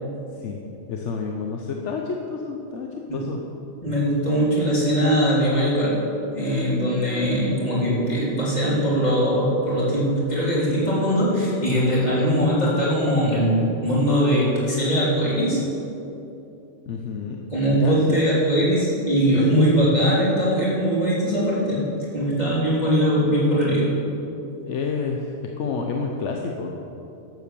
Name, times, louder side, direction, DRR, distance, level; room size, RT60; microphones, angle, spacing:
voice 1, 0.9-3.4 16.9-17.5 17.7-18.2 19.5-20.0 24.7-26.8, left 5 dB, 75° left, 2 dB, 1.1 m, -29 dB
voice 2, 3.8-6.0 6.3-15.6 17.5-21.9 22.1-23.9, equal, 35° left, -8 dB, 3.6 m, -21 dB
12.0 x 7.8 x 6.9 m, 2.9 s
omnidirectional pair, 1.2 m